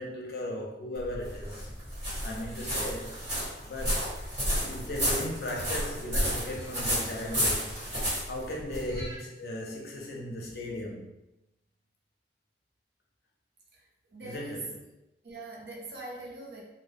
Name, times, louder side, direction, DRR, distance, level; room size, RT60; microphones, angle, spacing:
voice 1, 0.0-1.7 2.2-4.1 4.5-7.8 8.3-11.1 14.2-14.8, left 1 dB, 55° left, 0.5 m, -37 dB
sound 1, 1.0-9.1, equal, 35° right, 1.4 m, -31 dB
voice 2, 13.7-14.7 15.2-16.6, right 3 dB, 60° right, 0.6 m, -42 dB
2.2 x 2.1 x 3.3 m
head